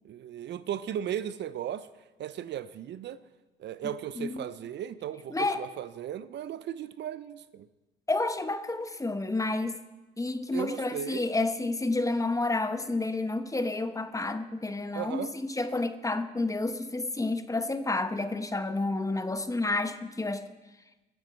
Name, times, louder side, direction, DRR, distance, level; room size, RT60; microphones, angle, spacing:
voice 1, 0.0-1.9 2.2-3.2 3.6-7.7 10.5-11.3 14.9-15.3, right 10 dB, 60° right, 14 dB, 0.6 m, -36 dB
voice 2, 4.2-4.5 5.3-5.6 8.1-9.8 10.2-20.4, left 2 dB, 15° left, 10 dB, 1.0 m, -30 dB
21.0 x 7.9 x 4.5 m, 1.1 s
supercardioid pair, 70°, 20 cm